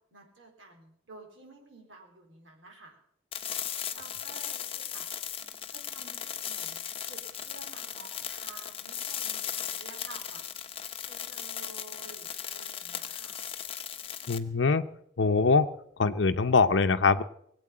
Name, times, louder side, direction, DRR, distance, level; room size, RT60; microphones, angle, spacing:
voice 1, 0.1-3.0 3.6-5.0 5.7-13.4, right 2 dB, 90° right, 1 dB, 4.1 m, -52 dB
sound 1, 3.3-14.4, left 9 dB, 30° left, 0.9 m, -37 dB
voice 2, 14.3-14.8 15.2-15.7 16.0-17.2, left 4 dB, 75° left, 8 dB, 0.7 m, -23 dB
20.0 x 8.4 x 8.5 m, 0.72 s
head